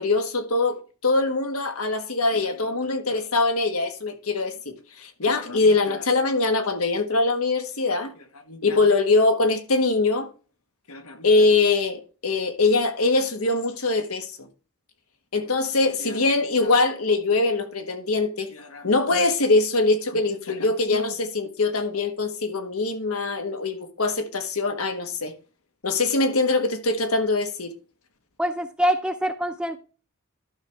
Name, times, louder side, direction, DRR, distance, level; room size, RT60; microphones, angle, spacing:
voice 1, 0.0-10.3 10.9-14.5 15.3-25.3 25.8-27.7, left 3 dB, 85° left, 1.4 m, -23 dB
voice 2, 28.4-29.8, equal, 5° right, 0.5 m, -24 dB
12.0 x 6.4 x 3.4 m
head